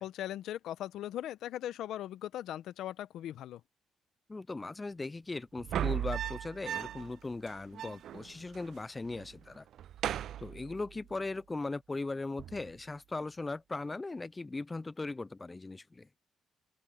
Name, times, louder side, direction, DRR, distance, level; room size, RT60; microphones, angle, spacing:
voice 1, 0.0-3.6, left 12 dB, 80° left, 0.8 m, -39 dB
voice 2, 4.3-9.7 10.4-16.1, left 3 dB, 20° left, 0.4 m, -39 dB
sound 1, 5.6-7.2 7.5-7.6 7.7-8.7 9.0-9.4 9.7-11.1 12.4-12.8, right 11 dB, 70° right, 0.3 m, -37 dB
open air
cardioid pair, 90°, 0 cm